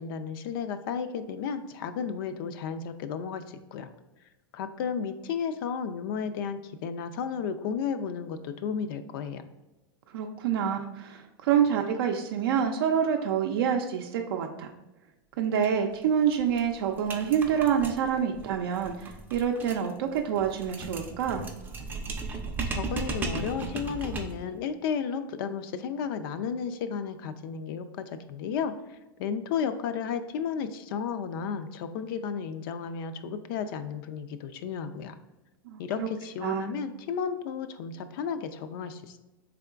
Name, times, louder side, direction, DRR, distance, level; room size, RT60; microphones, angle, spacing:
voice 1, 0.0-3.9 4.5-9.4 22.7-35.2 35.8-39.2, left 6 dB, 70° left, 10 dB, 0.4 m, -33 dB
voice 2, 10.1-14.7 15.4-21.5 35.7-36.1 36.4-36.7, right 8 dB, 85° right, 3 dB, 0.4 m, -27 dB
sound 1, 15.6-15.7 16.0-16.1 16.3-24.5, right 3 dB, 15° right, 0.4 m, -36 dB
3.7 x 3.4 x 2.4 m, 1.0 s
supercardioid pair, 135°, 12 cm